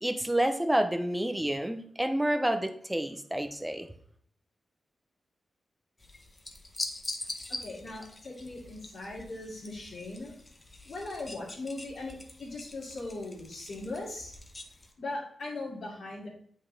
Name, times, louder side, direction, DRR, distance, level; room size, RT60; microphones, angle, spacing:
voice 1, 0.0-3.9, right 1 dB, 5° right, 8 dB, 0.6 m, -29 dB
sound 1, 6.0-14.9, left 2 dB, 20° left, 0.8 m, -43 dB
voice 2, 7.5-10.3 10.8-14.3 15.0-16.3, left 2 dB, 65° left, -8 dB, 2.6 m, -39 dB
9.3 x 5.5 x 3.3 m, 0.63 s
wide cardioid pair, 165°, 0 cm